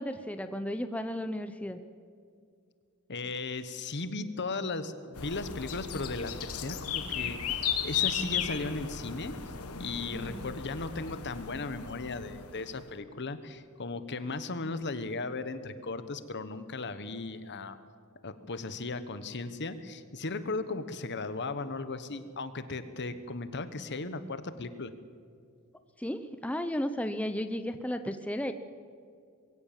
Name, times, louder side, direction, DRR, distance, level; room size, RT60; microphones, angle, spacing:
voice 1, 0.0-1.8 10.1-10.4 26.0-28.5, equal, 5° left, 9 dB, 0.6 m, -34 dB
voice 2, 3.1-9.3 9.8-17.8 18.2-24.9, left 3 dB, 55° left, 12 dB, 1.2 m, -36 dB
sound 1, 5.2-12.8, left 8 dB, 90° left, 1.5 m, -35 dB
22.0 x 16.5 x 7.5 m, 2.3 s
head